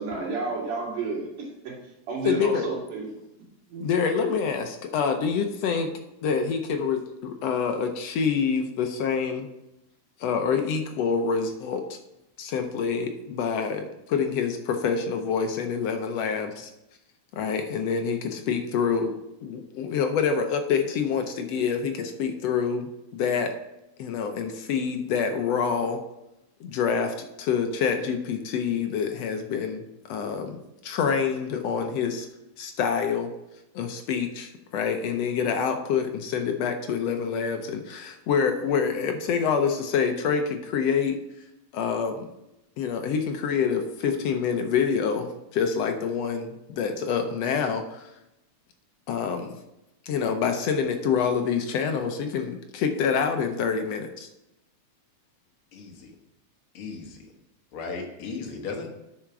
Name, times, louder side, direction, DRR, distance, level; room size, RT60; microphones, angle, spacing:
voice 1, 0.0-1.7 2.1-3.1 3.7-3.9, right 3 dB, 90° right, -3 dB, 4.1 m, -31 dB
voice 2, 2.2-2.7 3.8-5.9 6.2-9.5 10.2-11.8 12.4-16.7 17.3-19.1 19.4-23.5 24.0-26.0 26.6-29.8 30.1-32.3 32.6-33.3 33.7-41.2 41.7-42.3 42.8-48.1 49.1-49.6 50.1-54.3, left 6 dB, 70° left, 5 dB, 1.6 m, -26 dB
voice 3, 55.7-56.1 56.7-57.3 57.7-58.9, left 4 dB, 50° left, 2 dB, 1.9 m, -36 dB
8.8 x 5.7 x 5.9 m, 0.91 s
omnidirectional pair, 3.5 m